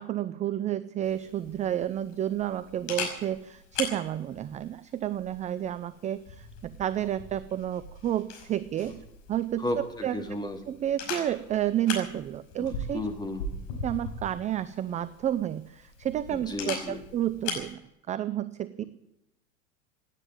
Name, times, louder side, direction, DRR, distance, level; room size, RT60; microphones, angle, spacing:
voice 1, 0.0-9.0 9.3-10.2 10.7-13.1 13.8-17.8 18.1-18.8, right 11 dB, 20° right, 16 dB, 0.5 m, -31 dB
Camera, 1.0-17.7, left 4 dB, 55° left, 5.5 m, -40 dB
voice 2, 9.6-10.6 12.6-13.4 16.3-17.0 18.8-18.9, left 1 dB, 10° left, 4 dB, 2.6 m, -34 dB
17.5 x 9.3 x 8.9 m, 0.89 s
figure-of-eight pair, 85°, 40 cm